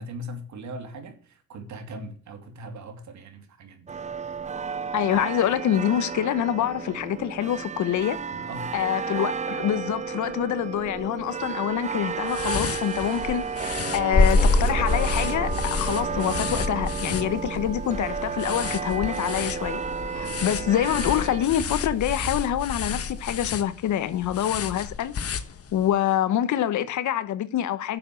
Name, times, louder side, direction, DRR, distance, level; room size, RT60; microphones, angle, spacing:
voice 1, 0.0-4.4 8.3-8.9 20.2-20.7, right 1 dB, 70° right, 3.0 m, -40 dB
bells jerusalem, 3.9-21.5, right 6 dB, 25° right, 0.6 m, -32 dB
voice 2, 4.9-8.2 8.7-19.8 20.1-25.1 25.7-28.0, left 11 dB, 75° left, 1.1 m, -26 dB
sound 1, 12.2-25.9, left 7 dB, 50° left, 1.4 m, -35 dB
sound 2, 14.1-23.5, left 2 dB, 25° left, 4.0 m, -28 dB
10.5 x 7.3 x 7.0 m
cardioid pair, 90°, 30 cm